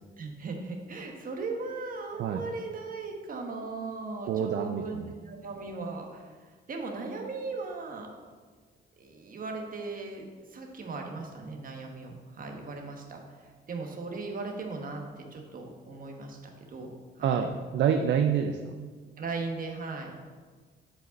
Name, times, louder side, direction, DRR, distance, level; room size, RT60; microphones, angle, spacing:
voice 1, 0.2-8.1 9.0-17.5 19.2-20.1, right 3 dB, 45° right, 2 dB, 1.2 m, -38 dB
voice 2, 4.3-5.1 17.2-18.8, right 7 dB, 65° right, 6 dB, 0.5 m, -27 dB
7.6 x 5.0 x 4.0 m, 1.5 s
cardioid pair, 90°, 20 cm